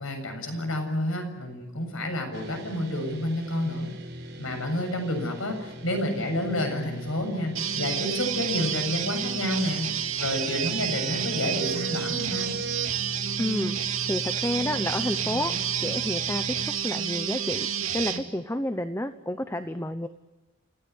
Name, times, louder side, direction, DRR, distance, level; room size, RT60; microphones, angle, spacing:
voice 1, 0.0-3.9 4.4-12.5, left 1 dB, 90° left, 5 dB, 7.3 m, -29 dB
sound 1, 2.3-16.7, equal, 50° right, 6.0 m, -41 dB
sound 2, 7.6-18.2, right 8 dB, 85° right, 2.4 m, -30 dB
voice 2, 13.4-13.8 14.1-15.5 15.8-17.7 17.9-20.1, left 1 dB, 10° left, 9 dB, 0.9 m, -30 dB
29.5 x 17.0 x 9.7 m, 1.1 s
head